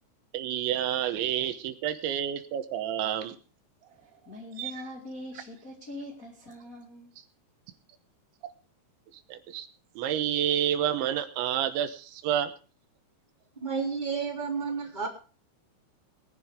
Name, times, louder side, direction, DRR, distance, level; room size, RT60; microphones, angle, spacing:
voice 1, 0.3-3.4 4.6-4.7 9.3-9.7 10.0-12.5, right 10 dB, 80° right, 3.3 m, -29 dB
voice 2, 3.9-7.1, left 1 dB, 25° left, 1.9 m, -43 dB
voice 3, 13.6-15.1, right 5 dB, 10° right, 2.8 m, -31 dB
20.0 x 11.0 x 3.6 m
omnidirectional pair, 5.4 m